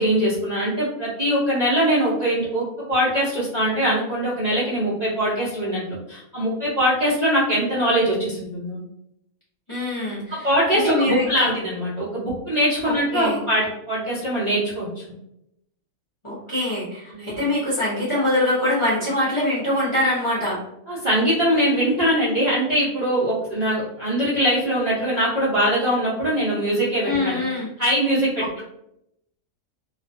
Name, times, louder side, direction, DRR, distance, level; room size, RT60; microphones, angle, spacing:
voice 1, 0.0-5.8 6.1-8.8 10.3-15.0 17.1-17.4 20.9-27.4 27.8-28.6, equal, 40° right, -10 dB, 0.6 m, -22 dB
voice 2, 9.7-10.5 10.7-11.5 12.8-13.4 16.2-20.6 27.0-27.7 28.4-28.6, left 1 dB, 30° left, -9 dB, 0.6 m, -24 dB
2.4 x 2.3 x 2.4 m, 0.80 s
omnidirectional pair, 1.5 m